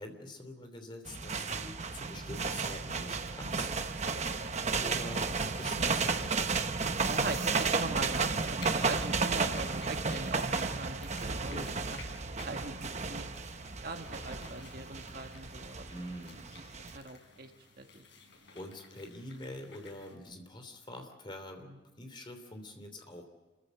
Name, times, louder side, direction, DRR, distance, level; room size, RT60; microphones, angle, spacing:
voice 1, 0.0-3.7 4.7-6.4 11.3-11.8 15.9-16.4 18.5-23.2, left 1 dB, 25° left, 5 dB, 3.1 m, -45 dB
sound 1, 1.1-17.0, right 4 dB, 40° right, 1.0 m, -33 dB
voice 2, 7.1-12.0 12.4-13.3 13.8-15.8 16.8-17.5 17.8-18.0 21.6-21.8, right 2 dB, 55° right, 5 dB, 1.8 m, -41 dB
sound 2, 8.0-20.2, left 4 dB, 80° left, 5.0 m, -55 dB
28.5 x 15.0 x 8.1 m, 1.2 s
head